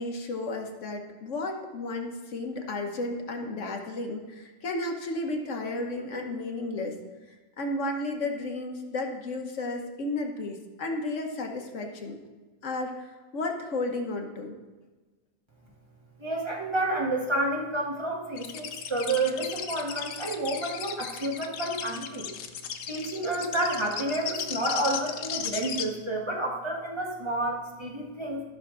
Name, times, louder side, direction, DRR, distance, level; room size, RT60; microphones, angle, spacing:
voice 1, 0.0-7.0 7.6-12.2 12.6-14.6, left 2 dB, 55° left, 2 dB, 1.3 m, -33 dB
voice 2, 16.2-22.3 22.9-28.4, right 1 dB, 20° right, -2 dB, 1.4 m, -30 dB
sound 1, 18.4-25.8, left 8 dB, 75° left, 1.1 m, -36 dB
14.0 x 5.9 x 3.8 m, 1.3 s
omnidirectional pair, 1.6 m